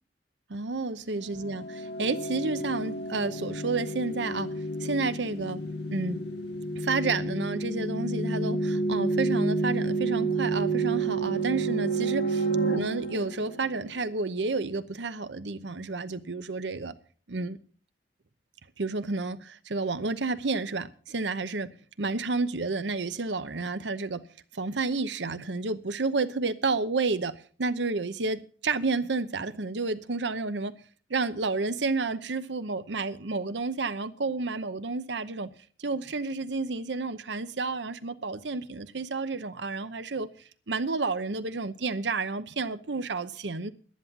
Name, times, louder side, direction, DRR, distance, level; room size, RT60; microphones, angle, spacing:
voice 1, 0.5-5.6 5.9-6.2 6.7-12.4 12.7-16.9 17.3-17.6 18.8-24.2 24.5-30.7 31.1-35.5 35.8-40.3 40.7-43.7, right 3 dB, 75° right, 0.9 m, -30 dB
sound 1, 1.3-14.0, right 2 dB, 65° left, 1.5 m, -30 dB
11.0 x 10.5 x 5.9 m
head